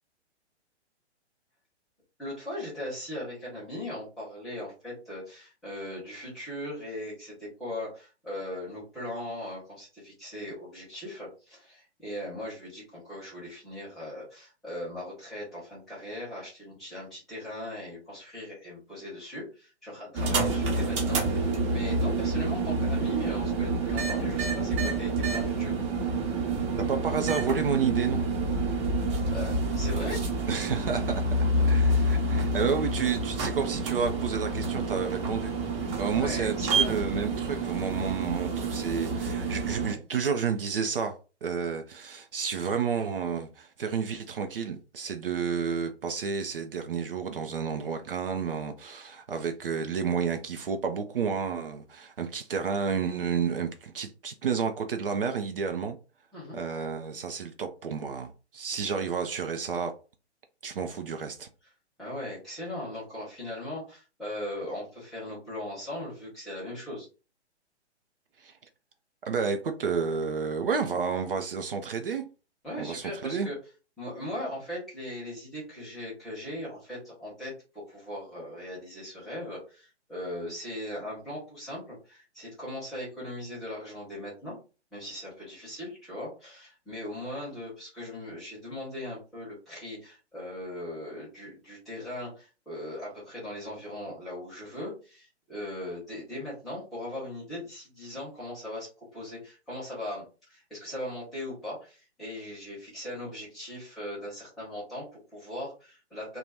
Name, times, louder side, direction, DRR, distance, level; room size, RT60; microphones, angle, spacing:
voice 1, 2.2-25.8 29.3-30.2 36.0-37.0 56.3-56.6 62.0-67.1 72.6-73.5 74.0-84.5 84.9-106.4, left 1 dB, ahead, 0.4 m, -39 dB
sound 1, 20.1-39.9, right 2 dB, 25° right, 1.0 m, -28 dB
voice 2, 26.8-28.3 30.5-35.5 36.0-56.0 56.5-59.9 60.6-61.5 68.4-68.6 69.2-72.3 72.8-73.5, right 6 dB, 50° right, 0.5 m, -31 dB
2.8 x 2.2 x 3.3 m
figure-of-eight pair, 125°, 35 cm